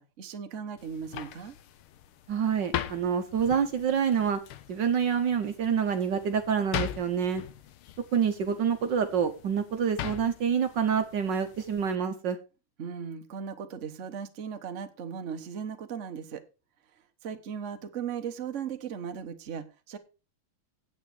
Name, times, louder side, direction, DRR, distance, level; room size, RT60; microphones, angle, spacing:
voice 1, 0.0-1.6 12.8-16.4 16.9-20.0, right 7 dB, 40° right, 1.2 m, -37 dB
sound 1, 0.8-12.0, left 12 dB, 80° left, 1.7 m, -41 dB
voice 2, 2.3-4.4 4.7-7.4 8.1-12.4, right 7 dB, 65° right, 1.5 m, -27 dB
8.9 x 8.4 x 4.9 m
omnidirectional pair, 2.4 m